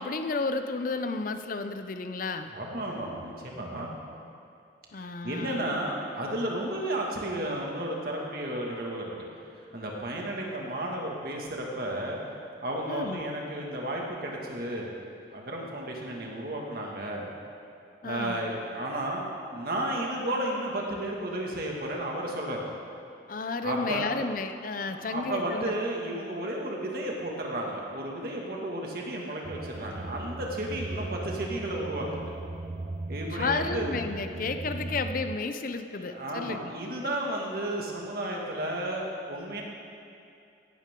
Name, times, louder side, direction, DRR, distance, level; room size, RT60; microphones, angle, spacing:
voice 1, 0.0-2.5 4.9-5.7 12.9-13.2 18.0-18.4 23.3-25.7 33.3-36.7, left 3 dB, 45° left, 8 dB, 0.6 m, -32 dB
voice 2, 2.5-3.9 5.0-9.3 9.7-12.2 12.6-14.9 15.3-17.3 18.0-22.6 23.6-24.1 24.8-32.3 33.1-33.9 34.3-34.4 35.9-39.6, right 1 dB, 55° right, -1 dB, 2.1 m, -33 dB
sound 1, 29.4-35.4, right 2 dB, 35° right, 0.4 m, -37 dB
16.5 x 12.0 x 3.8 m, 2.5 s
head